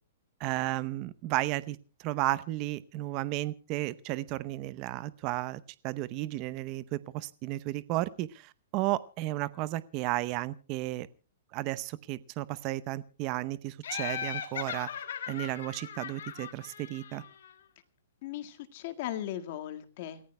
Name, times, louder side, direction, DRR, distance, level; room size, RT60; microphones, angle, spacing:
voice 1, 0.4-11.1 11.5-14.9 15.3-17.2, right 17 dB, 25° right, 18 dB, 0.7 m, -33 dB
Laughter, 13.8-17.5, left 8 dB, 65° left, 2.7 m, -38 dB
voice 2, 18.2-20.3, left 12 dB, 40° left, 8 dB, 1.8 m, -38 dB
29.0 x 15.0 x 2.2 m, 0.34 s
hypercardioid pair, 175°, 0 cm